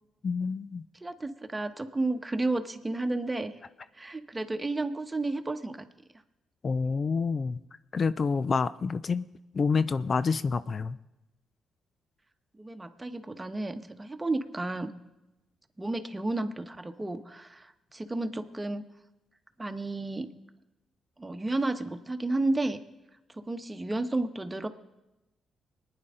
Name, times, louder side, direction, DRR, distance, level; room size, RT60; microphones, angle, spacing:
voice 1, 0.2-0.8 6.6-7.6 7.9-9.3 9.5-11.0, left 5 dB, 50° left, 15 dB, 0.4 m, -28 dB
voice 2, 1.0-3.5 4.0-5.9 12.6-14.9 15.8-18.8 19.6-20.3 21.2-22.8 23.4-24.7, right 2 dB, 20° right, 8 dB, 1.2 m, -32 dB
24.0 x 9.8 x 3.8 m, 1.0 s
hypercardioid pair, 50°, 0 cm